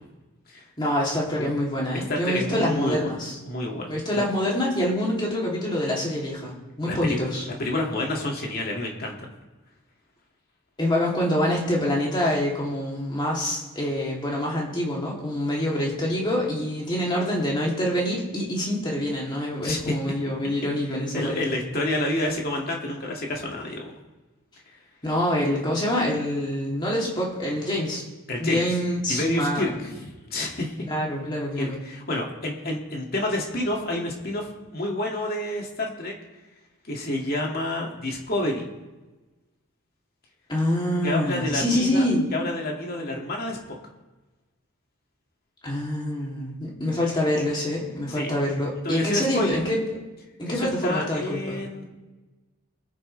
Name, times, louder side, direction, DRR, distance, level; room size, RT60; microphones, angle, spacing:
voice 1, 0.8-3.4 3.9-7.4 10.8-21.5 25.0-28.0 28.4-29.7 30.8-31.8 40.5-42.3 45.6-49.8 50.4-51.6, left 1 dB, 20° left, -4 dB, 3.0 m, -26 dB
voice 2, 1.9-4.2 6.9-9.3 19.6-19.9 21.1-23.9 24.7-24.8 28.3-28.7 29.1-30.7 31.6-36.1 36.8-38.7 41.0-42.1 42.3-43.6 48.2-48.3 48.8-49.6 50.4-51.9, left 1 dB, 45° left, -1 dB, 2.4 m, -29 dB
22.5 x 9.3 x 3.4 m, 1.2 s
head